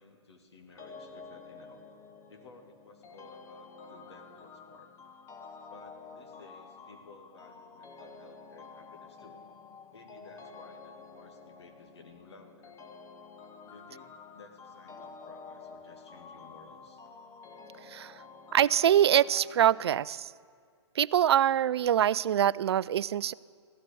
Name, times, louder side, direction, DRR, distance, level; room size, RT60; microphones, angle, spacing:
voice 1, 0.0-1.8 2.3-4.9 5.7-9.4 9.9-12.8 13.7-17.0, left 3 dB, 65° left, 5 dB, 2.3 m, -55 dB
sound 1, 0.8-20.0, left 4 dB, 20° left, 1.0 m, -50 dB
voice 2, 17.8-18.2 18.5-20.3 21.0-23.3, right 10 dB, 60° right, 21 dB, 0.4 m, -24 dB
16.0 x 12.5 x 6.9 m, 2.2 s
figure-of-eight pair, 125°, 15 cm